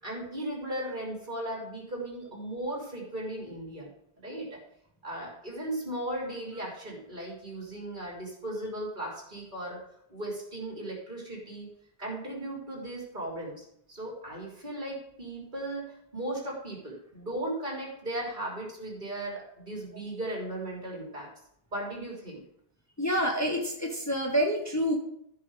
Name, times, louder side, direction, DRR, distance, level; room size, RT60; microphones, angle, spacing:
voice 1, 0.0-3.9 4.2-4.6 5.0-9.8 10.1-11.7 12.0-21.3 21.7-22.4, right 1 dB, 50° right, -2 dB, 3.4 m, -37 dB
voice 2, 23.0-24.9, equal, 15° left, 1 dB, 1.2 m, -27 dB
14.0 x 5.5 x 4.8 m, 0.74 s
omnidirectional pair, 1.0 m